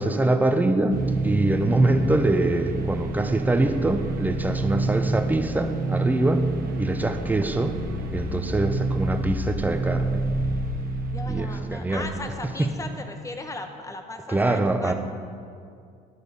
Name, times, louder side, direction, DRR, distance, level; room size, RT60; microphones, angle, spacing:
voice 1, 0.0-6.4 6.8-7.7 8.1-10.3 11.3-12.1 12.6-12.7 14.3-14.9, right 2 dB, 10° right, 7 dB, 0.6 m, -24 dB
sound 1, 0.9-12.4, right 2 dB, 60° right, 0.9 m, -28 dB
voice 2, 11.1-14.9, left 2 dB, 20° left, 6 dB, 0.8 m, -37 dB
11.0 x 4.0 x 6.7 m, 2.4 s
cardioid pair, 110°, 17 cm